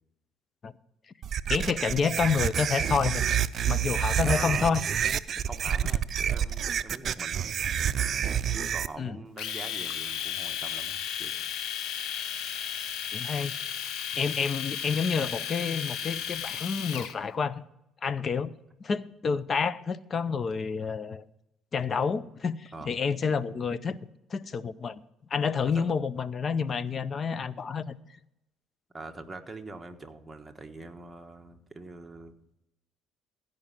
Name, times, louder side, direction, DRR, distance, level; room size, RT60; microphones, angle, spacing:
sound 1, 1.2-8.9, right 9 dB, 50° right, 0.5 m, -28 dB
voice 1, 1.5-3.3 3.7-4.8 5.3-5.4 9.0-9.2 13.1-13.5 14.1-17.6 18.0-18.5 18.8-21.3 21.7-24.0 24.3-25.0 25.3-27.9, left 5 dB, 40° left, 0.6 m, -29 dB
voice 2, 4.2-4.9 5.4-7.7 8.5-11.4 22.7-22.9 25.6-25.8 28.9-32.3, right 2 dB, 15° right, 1.4 m, -43 dB
Domestic sounds home sounds, 9.4-17.1, left 9 dB, 75° left, 1.0 m, -34 dB
16.0 x 5.3 x 7.4 m
supercardioid pair, 90°, 0 cm